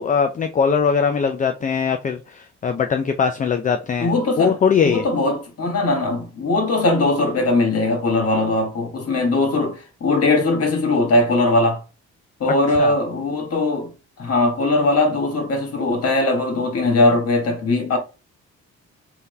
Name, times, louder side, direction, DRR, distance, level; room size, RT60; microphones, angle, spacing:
voice 1, 0.0-5.1 12.8-12.9, left 6 dB, 25° left, 0.4 m, -21 dB
voice 2, 4.0-11.8 12.4-13.9 14.2-18.0, left 2 dB, 50° left, 1.5 m, -20 dB
3.7 x 2.8 x 3.3 m
cardioid pair, 90°, 30 cm